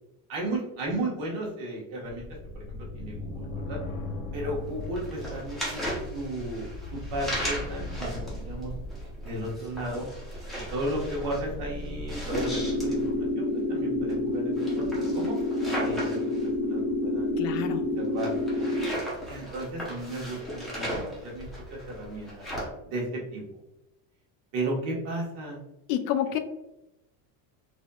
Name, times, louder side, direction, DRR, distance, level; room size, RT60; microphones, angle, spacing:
voice 1, 0.3-2.2 2.5-3.8 4.3-8.7 9.2-10.1 10.7-15.3 15.8-16.2 16.6-17.6 18.0-18.3 19.3-22.3 22.8-23.4 24.5-25.6, right 1 dB, 65° right, -3 dB, 1.4 m, -34 dB
sound 1, 2.0-13.3, left 1 dB, 85° left, 0.9 m, -39 dB
sound 2, 4.6-22.7, equal, ahead, 0.6 m, -37 dB
sound 3, 12.3-18.8, left 1 dB, 90° right, 1.1 m, -28 dB
voice 2, 17.4-18.0 25.9-26.4, left 10 dB, 65° left, 9 dB, 0.5 m, -29 dB
4.1 x 2.7 x 2.3 m, 0.94 s
cardioid pair, 170°, 45 cm